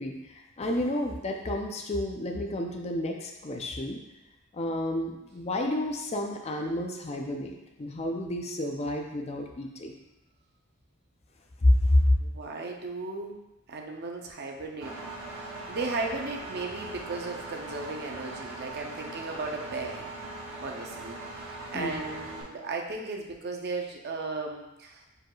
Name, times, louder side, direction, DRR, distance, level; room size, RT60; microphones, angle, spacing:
voice 1, 0.0-4.0 4.5-9.9 11.6-12.1 21.7-22.0, left 1 dB, 30° left, 2 dB, 0.4 m, -29 dB
voice 2, 12.2-13.4 13.7-15.0 15.3-20.1 20.6-25.0, right 3 dB, 50° right, 1 dB, 0.6 m, -36 dB
Engine, 14.8-22.4, right 2 dB, 70° right, 1.0 m, -40 dB
4.8 x 4.6 x 2.3 m, 0.95 s
head